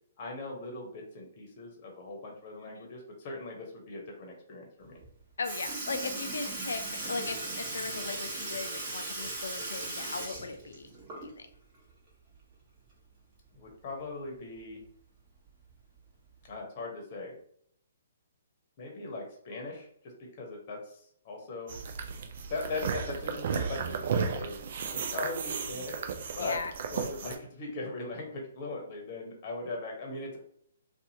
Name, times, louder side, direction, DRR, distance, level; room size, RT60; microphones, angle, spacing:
voice 1, 0.2-5.0 13.5-14.8 16.5-17.4 18.8-21.8 22.5-24.6 24.9-26.0 26.3-30.4, left 3 dB, 40° left, 0 dB, 0.9 m, -39 dB
Sink (filling or washing) / Liquid, 5.0-5.1 5.4-11.5 11.9-12.0 13.5-13.6 14.6-14.7 15.5-15.7 16.5-16.6, right 2 dB, 35° right, 1.1 m, -38 dB
voice 2, 5.4-10.9 11.2-11.3 26.4-26.7, left 4 dB, 75° left, 8 dB, 0.4 m, -38 dB
sound 1, 21.7-27.4, right 6 dB, 55° right, 0.4 m, -34 dB
2.6 x 2.4 x 2.8 m, 0.66 s
hypercardioid pair, 135°, 0 cm